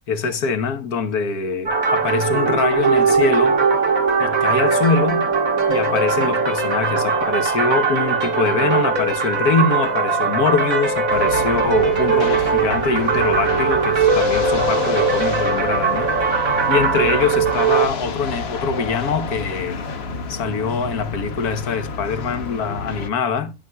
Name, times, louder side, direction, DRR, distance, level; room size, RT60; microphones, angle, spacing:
voice 1, 0.1-3.6 4.2-5.3 5.7-16.1 16.7-19.8 20.3-23.5, left 5 dB, 80° left, 1.5 m, -23 dB
sound 1, 1.7-17.9, right 5 dB, 65° right, 2.1 m, -20 dB
sound 2, 11.1-23.1, left 4 dB, 50° left, 1.1 m, -30 dB
9.2 x 8.7 x 2.3 m
omnidirectional pair, 1.6 m